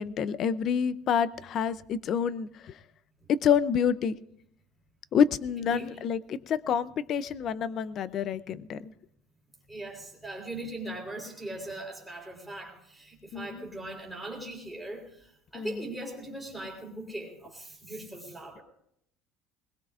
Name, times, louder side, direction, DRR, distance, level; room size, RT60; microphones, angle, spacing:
voice 1, 0.0-2.7 3.3-4.2 5.1-8.9 13.3-13.7 15.5-15.9, left 7 dB, 40° left, 16 dB, 0.5 m, -28 dB
voice 2, 5.6-5.9 9.7-18.6, right 1 dB, ahead, -1 dB, 3.8 m, -40 dB
21.0 x 20.5 x 2.5 m, 0.74 s
cardioid pair, 155°, 0 cm